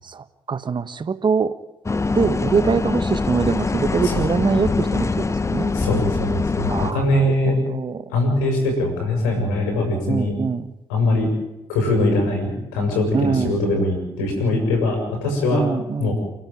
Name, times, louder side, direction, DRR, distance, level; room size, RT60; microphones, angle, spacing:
voice 1, 0.0-1.6 2.1-5.7 6.7-8.1 10.1-10.7 13.1-13.6 15.5-16.1, right 5 dB, 40° right, 14 dB, 1.4 m, -23 dB
sound 1, 1.9-6.9, left 3 dB, 25° left, 1.1 m, -23 dB
voice 2, 5.7-7.6 8.1-10.4 10.9-11.3 11.7-15.7 16.0-16.1, left 2 dB, 75° left, 3 dB, 6.9 m, -22 dB
29.5 x 12.0 x 8.9 m, 0.95 s
hypercardioid pair, 45°, 12 cm